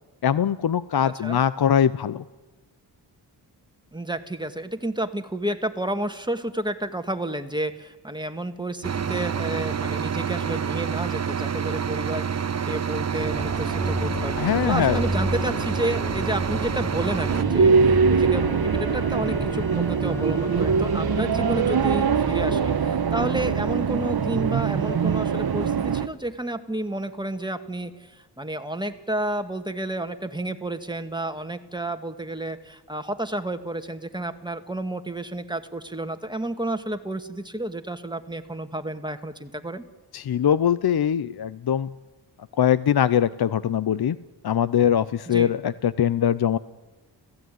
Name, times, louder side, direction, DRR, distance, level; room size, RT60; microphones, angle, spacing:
voice 1, 0.2-2.2 14.4-15.0 40.1-41.9 42.6-44.2 44.4-46.6, left 9 dB, 55° left, 16 dB, 0.7 m, -22 dB
voice 2, 1.0-1.4 3.9-39.8 45.3-45.5, right 1 dB, 10° right, 7 dB, 2.1 m, -31 dB
sound 1, 8.8-17.4, right 7 dB, 35° right, 0.7 m, -28 dB
Organ, 13.2-22.4, equal, 5° left, 1.7 m, -32 dB
sound 2, 17.3-26.1, right 6 dB, 55° right, 1.2 m, -22 dB
29.5 x 16.0 x 9.5 m, 1.2 s
cardioid pair, 55°, 44 cm